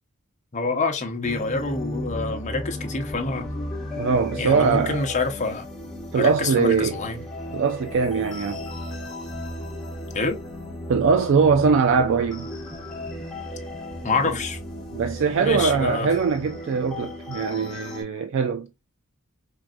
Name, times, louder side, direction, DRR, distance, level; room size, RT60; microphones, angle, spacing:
voice 1, 0.5-3.5 4.4-5.7 6.1-7.2 10.1-10.4 14.0-14.6 15.4-16.1, left 3 dB, 35° left, 0.7 m, -26 dB
sound 1, 1.2-18.0, left 1 dB, ahead, 1.3 m, -35 dB
voice 2, 4.0-5.0 6.1-7.0 7.5-8.6 10.9-12.5 14.9-18.7, right 5 dB, 60° right, 0.3 m, -21 dB
4.6 x 2.5 x 2.3 m
head